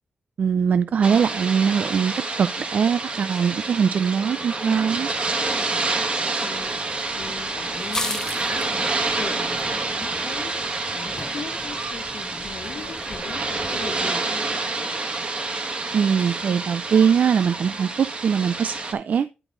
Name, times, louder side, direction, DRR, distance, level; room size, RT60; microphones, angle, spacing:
voice 1, 0.4-5.1 15.9-19.3, right 7 dB, 55° right, 0.4 m, -21 dB
sound 1, 1.0-18.9, right 3 dB, 40° right, 1.5 m, -28 dB
voice 2, 5.3-5.8 6.4-6.8 7.1-10.6 10.9-14.9, left 5 dB, 65° left, 1.2 m, -39 dB
sound 2, 6.5-14.1, left 2 dB, 20° left, 0.8 m, -38 dB
10.5 x 4.9 x 3.9 m
wide cardioid pair, 150°, 3 cm